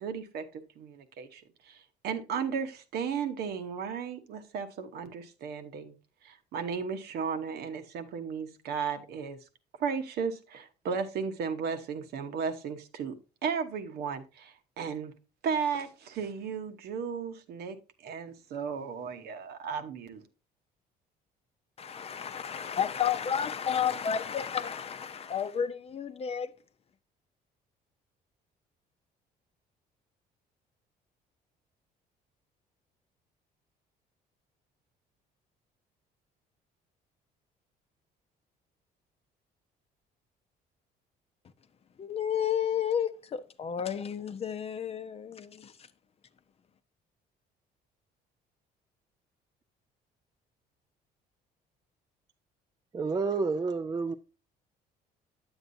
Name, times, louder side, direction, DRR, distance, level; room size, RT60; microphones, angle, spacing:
voice 1, 0.0-5.9 6.2-9.4 9.8-13.2 13.4-15.1 15.4-17.8 18.0-20.2, right 6 dB, 70° right, 1.1 m, -35 dB
voice 2, 21.8-26.5 42.0-45.7, left 8 dB, 35° left, 0.6 m, -31 dB
voice 3, 52.9-54.1, right 4 dB, 25° right, 0.4 m, -29 dB
9.0 x 8.0 x 2.7 m
cardioid pair, 110°, 17 cm